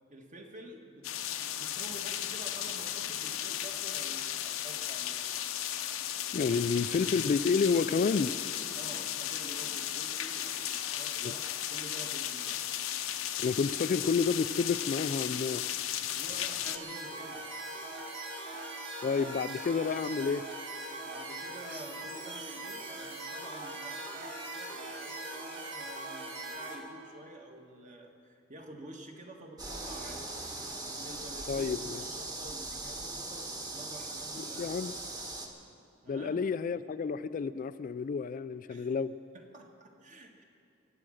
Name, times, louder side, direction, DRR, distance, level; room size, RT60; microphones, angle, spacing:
voice 1, 0.1-5.2 8.7-12.5 16.1-17.4 21.0-30.2 30.9-34.8 36.0-36.4 38.7-38.9 39.3-40.4, right 1 dB, 40° right, 2 dB, 1.6 m, -49 dB
sound 1, 1.0-16.8, left 11 dB, 90° left, 0.8 m, -35 dB
voice 2, 6.3-8.3 11.2-11.3 13.4-15.6 19.0-20.4 31.5-32.0 34.6-34.9 36.1-39.1, left 5 dB, 40° left, 14 dB, 0.3 m, -30 dB
sound 2, 16.6-26.8, right 2 dB, 65° right, 2.1 m, -41 dB
sound 3, 29.6-35.5, right 2 dB, 20° right, 1.4 m, -40 dB
23.0 x 8.6 x 6.4 m, 2.6 s
head